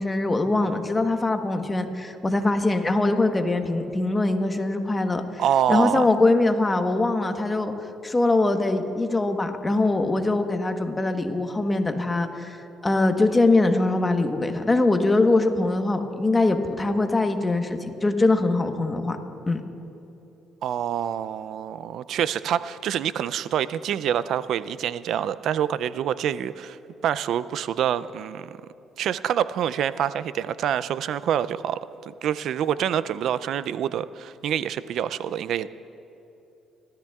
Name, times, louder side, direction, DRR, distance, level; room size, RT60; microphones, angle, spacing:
voice 1, 0.0-5.4 5.7-7.7 8.0-12.6 12.8-19.2 19.5-19.6, left 2 dB, 20° left, 6 dB, 1.1 m, -22 dB
voice 2, 5.4-6.1 20.6-26.8 27.0-28.6 29.0-35.7, right 9 dB, 70° right, 16 dB, 0.4 m, -26 dB
29.5 x 13.0 x 2.4 m, 2.9 s
supercardioid pair, 80°, 0 cm